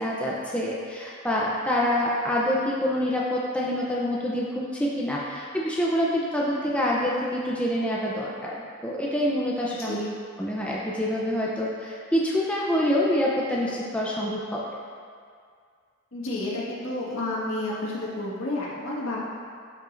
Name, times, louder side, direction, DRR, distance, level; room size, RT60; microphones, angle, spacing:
voice 1, 0.0-8.6 8.8-10.0 10.4-14.6, left 1 dB, 5° left, -5 dB, 0.6 m, -26 dB
voice 2, 16.1-19.2, left 2 dB, 70° left, -6 dB, 1.7 m, -30 dB
12.0 x 5.3 x 2.6 m, 2.2 s
head